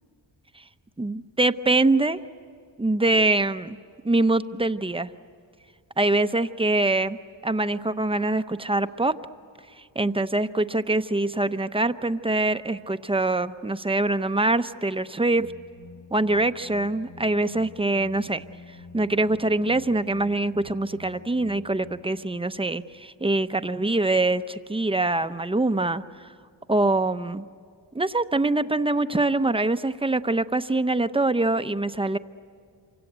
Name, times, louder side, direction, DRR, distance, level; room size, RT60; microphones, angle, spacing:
voice 1, 1.0-2.2 2.8-3.8 4.0-5.1 6.0-9.1 9.9-15.5 16.1-18.4 18.9-26.0 26.7-27.4 27.9-32.2, right 2 dB, 10° right, 10 dB, 0.8 m, -24 dB
sound 1, 15.3-22.0, left 3 dB, 85° left, 3.2 m, -47 dB
27.5 x 25.0 x 8.1 m, 2.2 s
cardioid pair, 75°, 46 cm